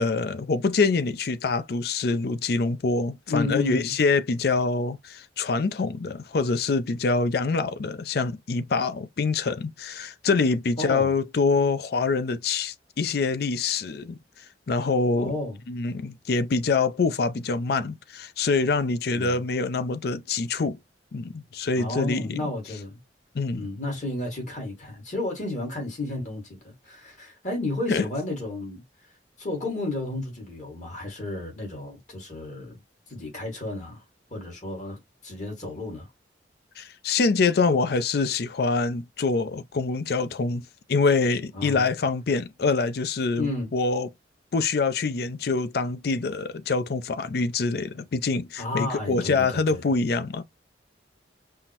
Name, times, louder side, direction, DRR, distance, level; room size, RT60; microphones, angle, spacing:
voice 1, 0.0-14.2 14.7-15.3 15.7-20.8 21.1-22.4 23.3-23.7 27.9-28.1 36.8-44.1 44.5-50.4, left 4 dB, 60° left, 0.5 m, -25 dB
voice 2, 3.3-3.9 10.8-11.1 15.1-15.6 19.1-19.4 21.8-23.0 23.5-28.8 29.4-32.8 33.1-34.0 34.3-36.1 41.5-41.8 43.4-43.7 48.6-49.8, left 2 dB, 45° left, 1.8 m, -32 dB
5.5 x 2.1 x 2.9 m
head